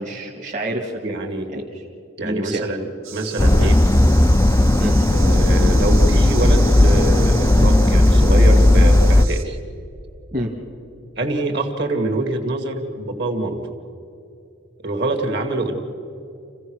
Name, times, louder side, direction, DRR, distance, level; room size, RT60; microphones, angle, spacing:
voice 1, 0.0-1.2 1.5-1.8 2.2-2.7 3.6-3.7 4.8-5.0 10.3-10.5, right 1 dB, 35° right, -2 dB, 1.7 m, -28 dB
voice 2, 1.0-1.5 2.2-2.9 3.1-3.8 5.1-9.6 11.2-13.6 14.8-15.8, right 2 dB, 50° right, 5 dB, 2.2 m, -25 dB
sound 1, 3.0-9.4, right 9 dB, 70° right, 2.0 m, -36 dB
sound 2, 3.4-9.3, left 1 dB, 15° left, 0.4 m, -14 dB
28.5 x 16.0 x 6.4 m, 2.6 s
head